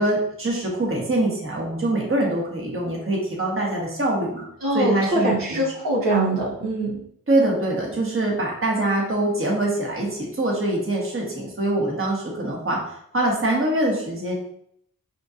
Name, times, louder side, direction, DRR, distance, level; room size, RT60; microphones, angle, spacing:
voice 1, 0.0-4.5 4.7-5.6 7.3-14.4, right 1 dB, 35° right, -2 dB, 1.3 m, -24 dB
voice 2, 4.6-7.0, right 1 dB, 65° right, -6 dB, 1.2 m, -23 dB
4.9 x 2.7 x 2.5 m, 0.70 s
cardioid pair, 45°, 36 cm